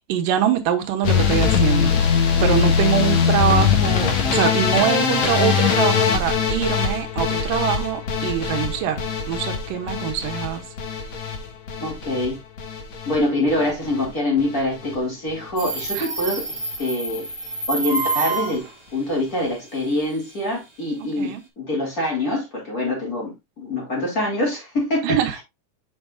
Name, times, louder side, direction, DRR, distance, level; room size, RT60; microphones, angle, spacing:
voice 1, 0.1-2.0 2.4-10.6 16.0-16.1 21.2-21.4 25.0-25.4, right 9 dB, 85° right, 2.7 m, -24 dB
sound 1, 1.0-13.2 13.5-14.1 14.4-15.0 15.3-15.5 15.8-15.9 16.2-16.3, left 6 dB, 60° left, 2.5 m, -21 dB
voice 2, 11.8-12.4 13.1-17.3 17.7-18.7 18.9-25.2, left 1 dB, 25° left, 3.1 m, -25 dB
Subway metro underground, 15.6-18.7, right 3 dB, 45° right, 0.3 m, -27 dB
7.7 x 6.3 x 2.3 m
omnidirectional pair, 3.8 m